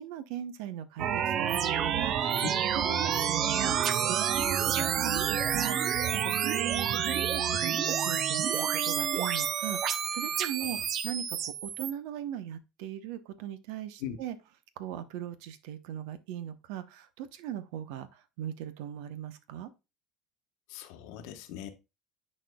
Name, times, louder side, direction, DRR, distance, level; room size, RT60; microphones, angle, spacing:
voice 1, 0.0-10.8 11.0-14.3 14.8-19.7, right 10 dB, 80° right, 0.8 m, -39 dB
sound 1, 1.0-11.9, right 9 dB, 50° right, 0.6 m, -29 dB
voice 2, 20.7-21.7, left 10 dB, 75° left, 1.1 m, -41 dB
9.9 x 4.4 x 2.2 m
supercardioid pair, 125°, 0 cm